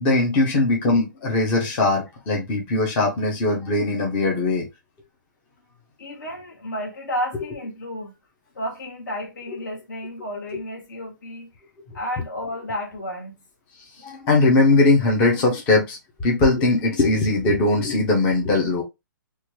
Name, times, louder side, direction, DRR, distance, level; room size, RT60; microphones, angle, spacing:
voice 1, 0.0-4.7 7.3-7.4 9.5-9.6 14.0-18.8, left 2 dB, 10° left, 0.4 m, -20 dB
voice 2, 6.0-8.1 8.5-11.5 11.9-13.3, equal, 60° left, 1.1 m, -32 dB
2.9 x 2.2 x 3.0 m
hypercardioid pair, 175°, 11 cm